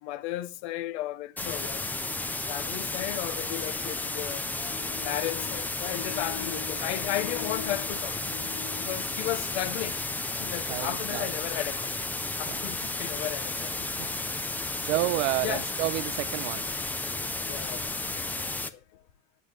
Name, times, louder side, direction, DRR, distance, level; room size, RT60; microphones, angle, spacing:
voice 1, 0.0-1.9 2.5-10.0 10.4-11.9 12.4-13.7 14.7-14.9 15.4-15.6 17.0-17.1 17.4-18.8, left 14 dB, 65° left, 1.0 m, -35 dB
sound 1, 1.4-18.7, left 2 dB, 5° left, 0.4 m, -33 dB
voice 2, 10.7-11.3 12.5-12.6 14.0-14.4 14.8-16.7, right 19 dB, 70° right, 0.6 m, -30 dB
9.8 x 8.1 x 6.6 m
supercardioid pair, 145°, 37 cm